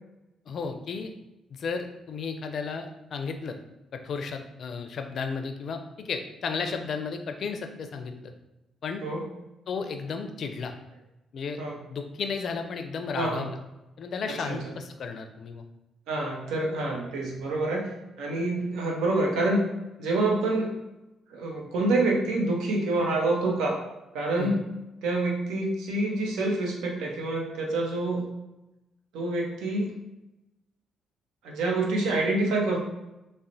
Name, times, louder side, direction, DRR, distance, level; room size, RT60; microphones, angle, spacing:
voice 1, 0.5-1.1 1.5-3.6 3.9-8.3 8.8-9.0 9.7-10.7 11.3-11.6 11.9-13.6 14.0-15.6 24.4-24.6, left 5 dB, 60° left, 6 dB, 0.4 m, -33 dB
voice 2, 13.1-13.5 14.3-14.6 16.1-17.9 18.2-19.6 20.0-20.7 21.3-23.8 24.1-24.6 25.0-28.2 29.1-29.9 31.4-32.8, right 2 dB, 90° right, -1 dB, 0.7 m, -27 dB
4.1 x 2.1 x 2.6 m, 0.96 s
cardioid pair, 90°, 0 cm